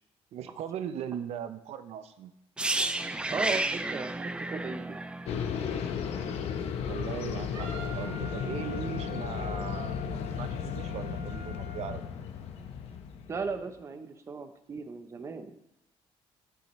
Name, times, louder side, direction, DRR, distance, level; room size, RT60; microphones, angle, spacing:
voice 1, 0.3-2.3 6.8-12.1, right 9 dB, 70° right, 10 dB, 0.7 m, -39 dB
sound 1, 2.6-6.4 6.7-6.9, right 2 dB, 10° right, 0.3 m, -32 dB
voice 2, 3.2-5.0 13.3-15.6, right 4 dB, 25° right, 8 dB, 0.7 m, -36 dB
sound 2, 5.3-13.6, left 7 dB, 65° left, 0.9 m, -35 dB
Wind instrument woodwind instrument, 7.5-12.0, left 3 dB, 85° right, 2.1 m, -44 dB
12.0 x 8.4 x 3.1 m, 0.86 s
cardioid pair, 180°, 11 cm